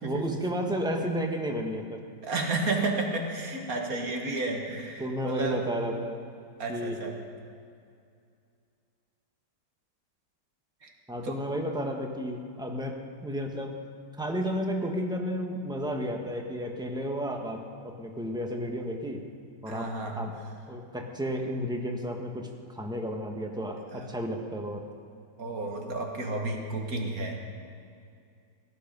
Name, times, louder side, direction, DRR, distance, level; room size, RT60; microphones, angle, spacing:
voice 1, 0.0-2.0 5.0-6.2 6.7-7.1 11.1-13.7 14.2-19.3 19.6-20.3 20.7-24.8, equal, 5° right, 2 dB, 1.1 m, -32 dB
voice 2, 2.2-5.6 6.6-7.2 10.8-10.9 11.2-11.3 19.7-20.2 23.9-24.1 25.4-27.4, right 2 dB, 55° right, 2 dB, 2.0 m, -32 dB
17.5 x 11.5 x 5.3 m, 2.4 s
omnidirectional pair, 1.9 m